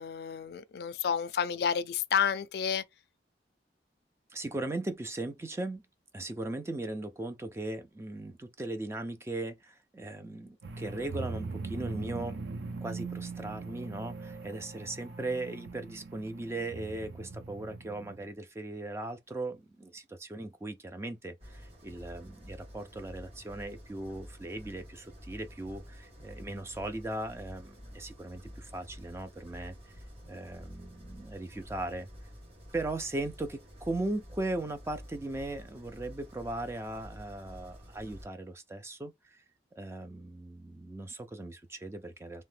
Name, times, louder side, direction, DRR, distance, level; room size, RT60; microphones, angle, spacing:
voice 1, 0.0-2.8, left 7 dB, 60° left, 0.3 m, -30 dB
voice 2, 4.3-5.8 6.1-12.4 12.8-29.8 30.2-32.1 32.7-39.4 39.8-42.4, right 2 dB, 15° right, 0.3 m, -38 dB
sound 1, 10.6-18.3, right 4 dB, 85° right, 0.5 m, -41 dB
sound 2, 21.4-38.2, equal, 35° right, 1.1 m, -49 dB
2.8 x 2.1 x 3.2 m
head